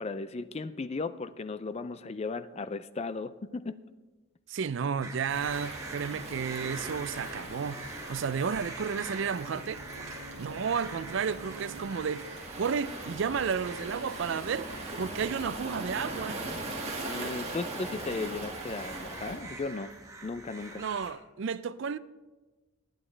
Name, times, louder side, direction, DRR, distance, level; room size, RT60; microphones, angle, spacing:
voice 1, 0.0-3.8 17.0-19.9 20.2-20.8, left 3 dB, 30° left, 0.4 m, -36 dB
voice 2, 4.5-9.8 10.4-14.7 15.0-16.4 20.8-22.0, right 6 dB, 60° right, 0.4 m, -32 dB
sound 1, 5.0-21.1, right 2 dB, 15° right, 1.2 m, -46 dB
Waves surf, 5.3-19.4, right 2 dB, 30° right, 1.9 m, -40 dB
Bowed string instrument, 8.8-12.5, right 2 dB, 75° right, 1.7 m, -49 dB
19.5 x 9.2 x 3.3 m
head